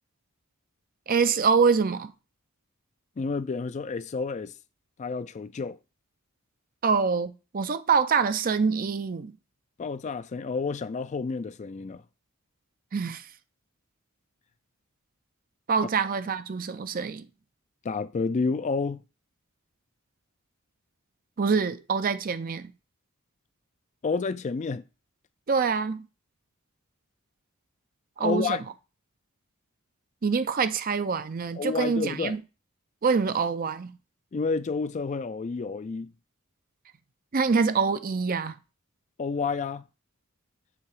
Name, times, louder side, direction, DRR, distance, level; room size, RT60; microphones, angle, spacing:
voice 1, 1.1-2.1 6.8-9.3 12.9-13.3 15.7-17.3 21.4-22.7 25.5-26.1 28.2-28.6 30.2-32.4 33.0-33.9 37.3-38.5, right 5 dB, 40° right, 0.5 m, -25 dB
voice 2, 3.2-4.5 5.0-5.8 9.8-12.0 15.8-15.9 17.8-19.0 24.0-24.8 28.2-28.6 31.6-32.4 34.3-36.1 39.2-39.8, left 4 dB, 35° left, 0.3 m, -30 dB
7.3 x 3.0 x 4.8 m
head